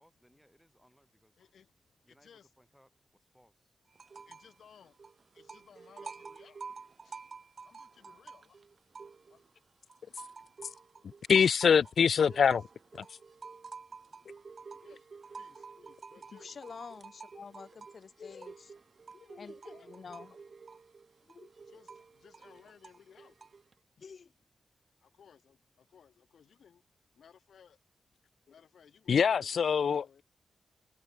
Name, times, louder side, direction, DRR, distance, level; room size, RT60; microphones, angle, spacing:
voice 1, 0.0-1.4 2.0-3.8, equal, ahead, 6.7 m, -67 dB
voice 2, 1.4-2.5 4.3-5.0 5.3-6.6 7.0-7.2 7.6-8.6 9.3-9.4 10.4-10.7 11.7-11.9 12.3-12.6 14.7-16.6 19.7-20.0 21.6-23.4 25.0-26.8 27.1-27.8 28.5-30.2, left 7 dB, 90° left, 3.2 m, -60 dB
sound 1, 3.9-4.6 4.8-9.5 9.9-23.7, right 5 dB, 45° right, 0.4 m, -50 dB
voice 3, 11.0-12.6 29.1-30.2, left 7 dB, 70° left, 0.3 m, -24 dB
voice 4, 16.3-18.7 19.1-20.4 21.3-21.5 24.0-24.3, left 5 dB, 55° left, 0.7 m, -48 dB
wide cardioid pair, 130°, 0 cm